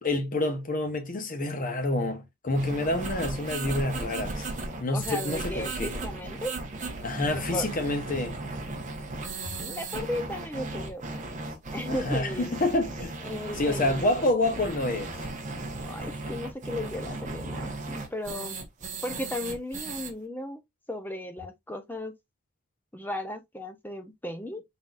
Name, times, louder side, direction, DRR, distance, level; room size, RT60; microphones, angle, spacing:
voice 1, 0.0-4.5 4.8-5.9 7.0-8.4 12.0-13.1 13.6-15.2, left 2 dB, 40° left, 0.9 m, -28 dB
sound 1, 2.5-20.1, right 2 dB, 35° right, 1.0 m, -36 dB
voice 2, 4.9-6.5 7.3-7.7 9.6-12.5 13.2-14.3 15.9-18.6 19.0-20.6 20.9-22.1 22.9-24.6, left 1 dB, 10° left, 0.7 m, -36 dB
4.0 x 3.9 x 2.4 m
head